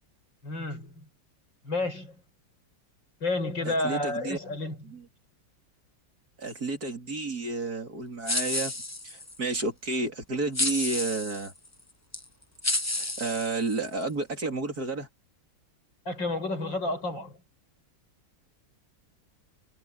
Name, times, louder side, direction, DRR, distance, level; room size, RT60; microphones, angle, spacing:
voice 1, 0.4-1.0 1.6-2.2 3.2-4.8 16.0-17.4, left 2 dB, 85° left, 6.5 m, -30 dB
voice 2, 3.7-4.4 4.9-5.0 6.4-8.7 9.0-11.5 13.0-15.1, right 3 dB, 55° right, 4.0 m, -31 dB
sound 1, 8.3-9.4 10.5-11.5 12.1-12.2 12.6-14.0, left 2 dB, 15° left, 0.5 m, -30 dB
omnidirectional pair, 2.0 m